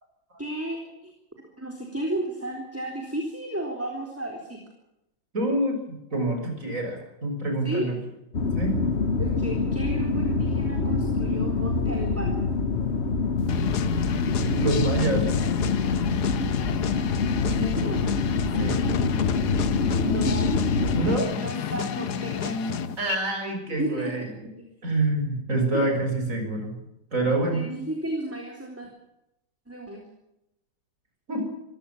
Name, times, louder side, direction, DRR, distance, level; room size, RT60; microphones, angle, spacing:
voice 1, 0.4-1.1 1.6-4.6 7.6-7.9 9.2-12.4 17.5-18.0 19.9-20.6 21.0-22.6 23.7-24.1 24.6-24.7 25.7-26.0 27.5-28.9 29.7-30.0, right 1 dB, 5° right, 1 dB, 3.8 m, -33 dB
voice 2, 5.3-8.0 8.6-8.8 14.6-15.3 18.6-18.9 20.9-21.3 23.0-24.3 24.8-26.8 27.1-27.6 31.3-31.4, right 2 dB, 40° right, 3 dB, 6.9 m, -26 dB
sound 1, 8.3-21.2, left 4 dB, 40° left, 1.3 m, -25 dB
sound 2, 13.5-23.2, left 7 dB, 60° left, 1.6 m, -30 dB
25.0 x 17.0 x 7.3 m, 0.87 s
omnidirectional pair, 2.0 m